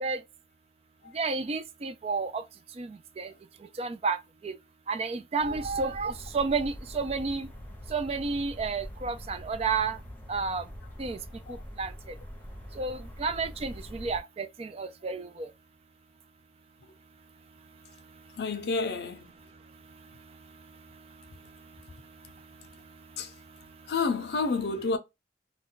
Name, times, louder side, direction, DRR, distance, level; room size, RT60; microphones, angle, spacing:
voice 1, 1.1-2.4 2.8-2.9 3.2-3.3 3.8-4.2 4.4-4.6 4.9-7.5 7.9-10.0 10.3-10.6 11.0-11.2 11.8-11.9 12.8-15.5, right 4 dB, 35° right, 0.3 m, -31 dB
sound 1, 5.4-14.2, equal, 10° left, 0.8 m, -44 dB
voice 2, 18.4-19.3 23.2-23.3 23.9-25.0, left 4 dB, 70° left, 0.5 m, -29 dB
2.3 x 2.2 x 3.7 m
head